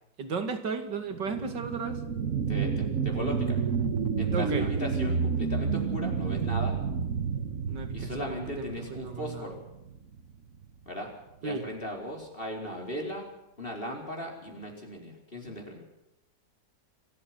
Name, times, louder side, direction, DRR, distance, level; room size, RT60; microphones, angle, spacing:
voice 1, 0.2-2.0 4.3-4.7 7.7-8.3 8.6-9.5 11.4-11.7, right 4 dB, 80° right, 8 dB, 3.0 m, -34 dB
sound 1, 1.1-10.2 10.6-10.7, right 6 dB, 50° right, 1.5 m, -30 dB
voice 2, 2.5-3.6 4.2-6.8 7.9-9.6 10.9-11.1 11.4-13.3 13.6-15.8, left 1 dB, 30° left, 1 dB, 4.7 m, -37 dB
26.5 x 14.5 x 7.7 m, 0.87 s
omnidirectional pair, 1.9 m